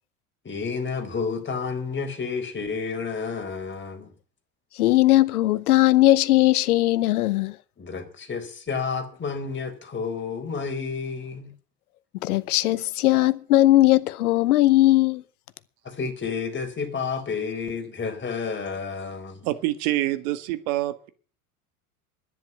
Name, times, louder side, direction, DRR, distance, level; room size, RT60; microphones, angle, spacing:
voice 1, 0.4-4.1 7.8-11.5 12.6-12.7 15.8-19.5, left 5 dB, 25° left, 4.1 m, -30 dB
voice 2, 4.8-7.6 12.2-15.2, left 16 dB, 80° left, 0.9 m, -19 dB
voice 3, 19.4-21.1, right 16 dB, 65° right, 1.6 m, -26 dB
10.5 x 10.5 x 9.2 m
hypercardioid pair, 75°, 44 cm